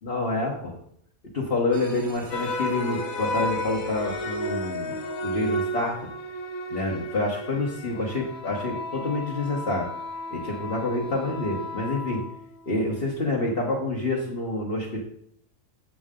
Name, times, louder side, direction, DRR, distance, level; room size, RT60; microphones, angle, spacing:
voice 1, 0.0-0.8 1.3-5.0 5.2-6.0 6.7-9.9 10.3-12.2 12.7-15.0, left 2 dB, 45° left, -4 dB, 1.5 m, -27 dB
sound 1, 1.7-6.6, right 1 dB, 50° right, 1.8 m, -46 dB
sound 2, 2.3-12.7, left 1 dB, 75° left, 1.3 m, -33 dB
8.0 x 7.6 x 3.7 m, 0.68 s
omnidirectional pair, 1.5 m